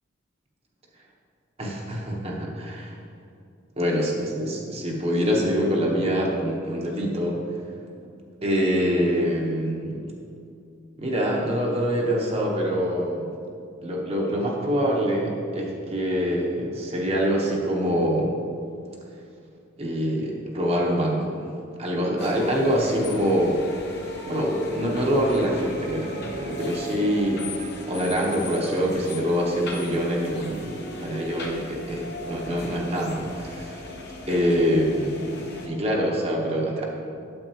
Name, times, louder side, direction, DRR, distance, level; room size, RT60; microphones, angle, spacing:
voice 1, 1.6-2.9 3.8-7.4 8.4-10.0 11.0-13.4 13.8-18.3 19.8-21.5 21.8-23.6 24.2-27.4 27.9-33.8 34.3-36.9, equal, 30° right, -2 dB, 0.9 m, -25 dB
sound 1, 22.2-35.7, left 1 dB, 55° left, 1.1 m, -36 dB
8.9 x 7.7 x 2.9 m, 2.5 s
head